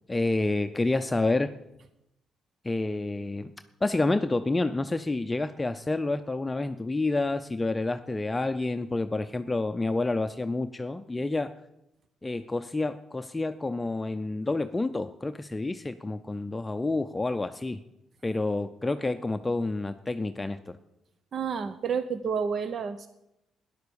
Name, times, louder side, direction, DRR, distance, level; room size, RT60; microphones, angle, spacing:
voice 1, 0.1-1.5 2.6-3.5 3.8-11.6 12.2-17.8 18.2-20.8, left 2 dB, 15° left, 9 dB, 0.6 m, -29 dB
voice 2, 21.3-23.1, right 6 dB, 50° right, 11 dB, 0.8 m, -30 dB
13.0 x 10.5 x 7.0 m, 0.87 s
cardioid pair, 90°, 0 cm